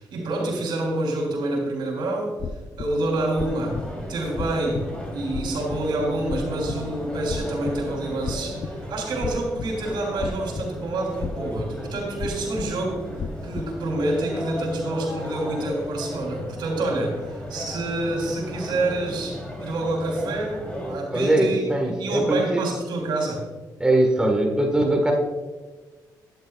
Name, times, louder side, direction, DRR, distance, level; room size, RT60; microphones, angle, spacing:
voice 1, 0.0-2.4 2.8-3.8 4.1-13.0 13.4-23.4, right 2 dB, 80° right, 0 dB, 3.3 m, -27 dB
sound 1, 2.4-13.8, left 5 dB, 50° left, 0.6 m, -36 dB
sound 2, 3.4-21.0, left 1 dB, 15° left, 3.2 m, -35 dB
voice 2, 21.1-22.6 23.8-25.1, right 1 dB, 10° right, 1 dB, 1.5 m, -21 dB
13.5 x 11.0 x 2.4 m, 1.3 s
cardioid pair, 90°, 8 cm